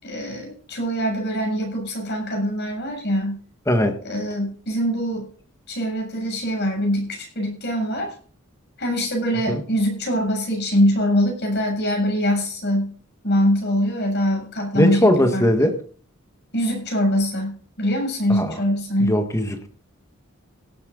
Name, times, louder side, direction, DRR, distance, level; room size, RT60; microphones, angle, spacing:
voice 1, 0.0-3.4 4.0-5.3 5.7-8.1 8.8-12.9 13.2-15.5 16.5-19.2, equal, 55° left, 2 dB, 7.3 m, -23 dB
voice 2, 3.7-4.0 9.5-9.6 14.7-15.8 18.3-18.6 19.0-19.7, left 1 dB, 15° left, 5 dB, 1.7 m, -19 dB
17.5 x 8.8 x 4.0 m, 0.43 s
head